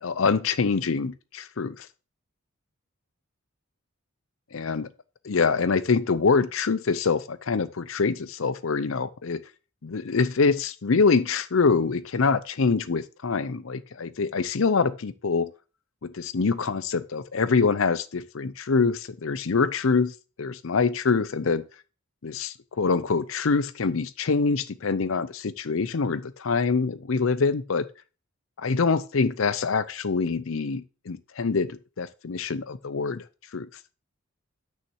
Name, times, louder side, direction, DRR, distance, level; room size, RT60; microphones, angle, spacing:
voice 1, 0.0-1.9 4.5-4.9 5.2-9.4 9.8-15.5 16.0-20.1 20.4-21.6 22.2-27.9 28.6-33.2 33.5-33.7, left 4 dB, 70° left, 0.6 m, -25 dB
6.4 x 5.6 x 6.3 m
head